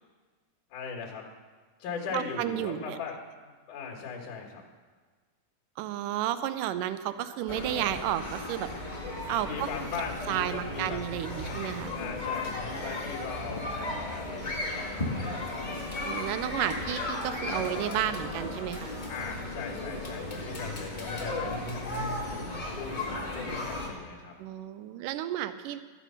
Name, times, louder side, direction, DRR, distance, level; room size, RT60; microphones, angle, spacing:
voice 1, 0.7-1.2 1.8-4.6 9.4-11.1 11.4-11.6 11.9-15.6 19.1-24.3, left 5 dB, 65° left, -1 dB, 3.0 m, -39 dB
voice 2, 2.1-3.0 5.8-8.7 9.3-9.7 10.3-11.9 16.0-18.9 24.4-25.8, right 12 dB, 80° right, 12 dB, 2.0 m, -32 dB
sound 1, 7.5-23.9, left 2 dB, 40° left, 0.6 m, -35 dB
14.5 x 8.4 x 5.7 m, 1.4 s
omnidirectional pair, 4.1 m